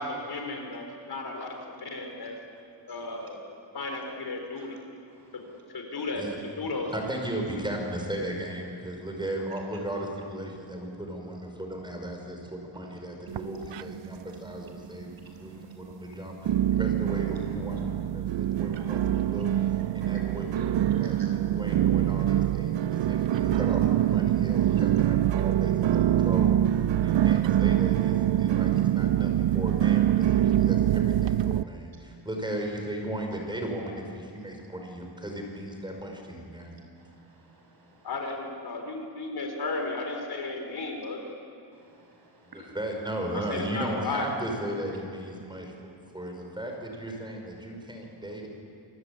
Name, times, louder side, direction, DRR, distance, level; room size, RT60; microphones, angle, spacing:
voice 1, 0.0-2.4 2.9-3.4 3.7-4.8 5.3-5.4 5.7-6.2 6.6-7.1 38.0-41.2 43.3-44.3, left 3 dB, 55° left, 3 dB, 4.4 m, -34 dB
voice 2, 5.1-5.5 12.7-13.0 15.2-15.7 18.8-18.9 19.8-20.2 20.6-20.7 21.0-21.4 34.5-34.6 36.6-38.1 41.7-42.8, right 2 dB, 55° right, 1 dB, 6.4 m, -55 dB
voice 3, 6.9-16.5 16.8-36.8 42.5-48.5, right 1 dB, 10° right, 1 dB, 5.3 m, -36 dB
sound 1, 13.3-14.2 14.5-15.1 15.6-15.7 16.5-31.6, right 11 dB, 75° right, 0.6 m, -24 dB
27.5 x 23.5 x 8.6 m, 2.7 s
wide cardioid pair, 165°, 44 cm